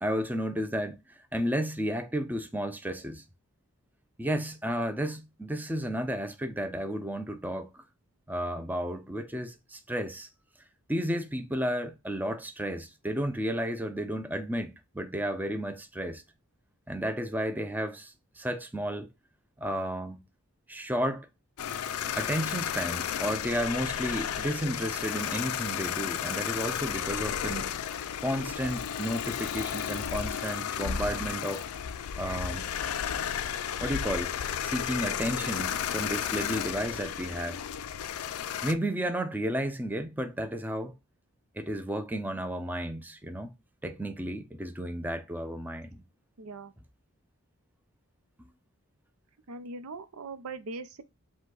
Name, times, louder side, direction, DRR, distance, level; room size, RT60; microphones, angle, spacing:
voice 1, 0.0-3.2 4.2-7.8 8.3-10.3 10.9-16.2 16.9-19.1 19.6-20.2 20.7-21.3 22.2-27.7 28.2-31.7 32.2-32.7 33.8-34.3 34.6-37.6 38.6-40.9 41.6-43.5 43.8-46.0, equal, 10° right, 0.4 m, -32 dB
sound 1, 21.6-38.7, left 9 dB, 85° left, 0.4 m, -33 dB
voice 2, 46.4-46.7 49.5-51.0, right 3 dB, 85° right, 0.6 m, -40 dB
5.0 x 2.3 x 3.8 m
head